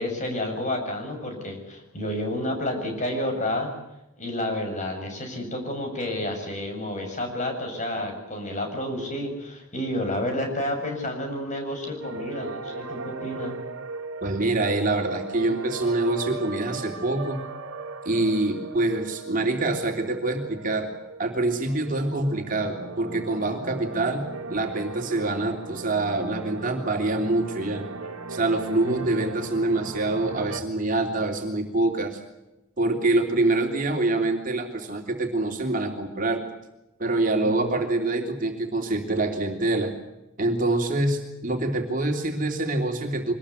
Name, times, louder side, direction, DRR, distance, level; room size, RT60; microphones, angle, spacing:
voice 1, 0.0-3.7 4.2-13.5 28.8-29.2 37.4-37.6, left 1 dB, 35° left, 3 dB, 7.2 m, -30 dB
sound 1, 12.0-30.6, right 3 dB, 80° right, 2.3 m, -38 dB
voice 2, 14.2-17.4 18.0-20.9 21.2-24.2 24.5-27.8 28.3-32.2 32.8-36.4 37.0-39.9 40.4-43.3, right 2 dB, 40° right, 3 dB, 3.2 m, -25 dB
24.5 x 20.5 x 8.5 m, 0.93 s
head